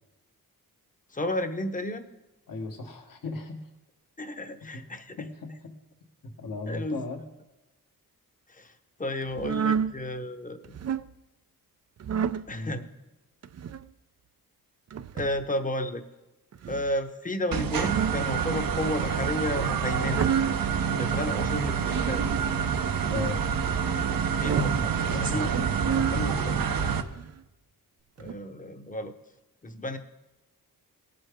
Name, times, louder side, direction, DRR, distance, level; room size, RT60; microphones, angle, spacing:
voice 1, 1.1-2.1 4.2-5.2 6.7-7.0 8.5-10.8 12.5-12.9 15.1-16.0 16.7-20.3 21.0-22.2 24.3-25.6 28.2-29.2 29.6-30.0, left 1 dB, 20° left, 8 dB, 0.9 m, -32 dB
voice 2, 2.5-3.7 4.7-4.8 5.2-5.7 6.4-7.2 12.5-12.8 21.3-21.4 23.1-23.4 25.1-25.5 25.8-26.7, left 3 dB, 65° left, 3 dB, 1.5 m, -36 dB
sound 1, 9.3-9.9 10.6-11.1 12.0-12.5 13.4-13.9 14.9-15.4 16.5-16.9 17.6-18.3 18.9-19.3 19.9-20.6 21.4-21.9 22.7-23.3 24.2-24.9 25.5-26.2 26.9-27.4 28.2-28.3, right 8 dB, 45° right, 0.5 m, -30 dB
sound 2, 17.5-27.0, right 7 dB, 70° right, 0.9 m, -27 dB
19.0 x 7.7 x 3.6 m, 0.99 s
wide cardioid pair, 110°, 36 cm